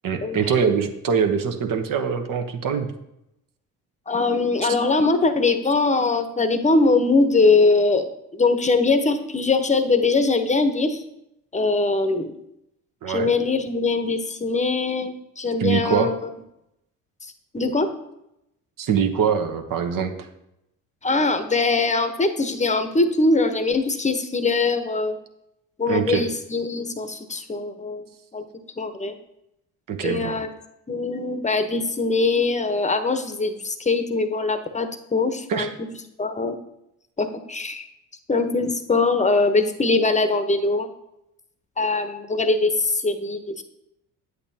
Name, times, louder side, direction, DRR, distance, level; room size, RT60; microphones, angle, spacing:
voice 1, 0.0-2.9 13.0-13.3 15.6-16.1 18.8-20.3 25.9-26.2 29.9-30.4 35.5-35.7, right 7 dB, 50° right, 6 dB, 1.1 m, -23 dB
voice 2, 4.1-11.0 11.5-12.3 13.1-16.2 17.2-17.9 21.0-25.2 25.8-28.1 28.3-28.4 28.8-29.2 30.0-30.5 30.9-35.7 36.2-36.6 37.2-37.9 38.3-40.9 41.8-43.6, left 3 dB, 15° left, 9 dB, 1.0 m, -22 dB
9.1 x 8.2 x 2.8 m, 0.83 s
hypercardioid pair, 55°, 40 cm